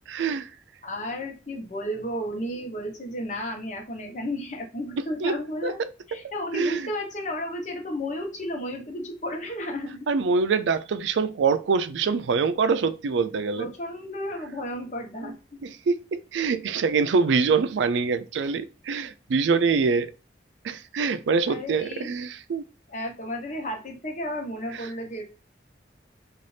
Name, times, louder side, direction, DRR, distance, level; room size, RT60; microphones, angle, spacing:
voice 1, 0.1-0.5 5.2-5.4 5.6-5.9 6.5-6.9 10.1-13.7 15.2-15.3 15.6-20.1 20.6-22.6, right 5 dB, 85° right, 0.4 m, -24 dB
voice 2, 0.8-5.8 6.1-10.1 13.6-15.3 21.5-22.1 22.9-25.2, left 1 dB, 40° left, 0.9 m, -33 dB
4.0 x 2.4 x 3.2 m
head